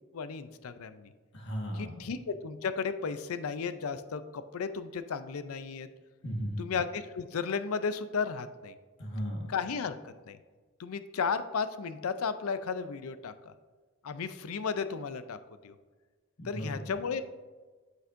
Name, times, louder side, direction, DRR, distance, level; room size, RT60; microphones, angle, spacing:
voice 1, 0.1-1.1 1.7-5.9 6.6-8.8 9.5-10.4 10.8-13.5 14.0-15.4 15.6-15.7 16.4-17.2, left 5 dB, 80° left, 12 dB, 0.5 m, -34 dB
voice 2, 1.3-2.0 6.2-6.7 9.0-9.5 16.4-16.9, equal, 55° left, 0 dB, 1.6 m, -36 dB
8.2 x 7.9 x 2.6 m, 1.4 s
head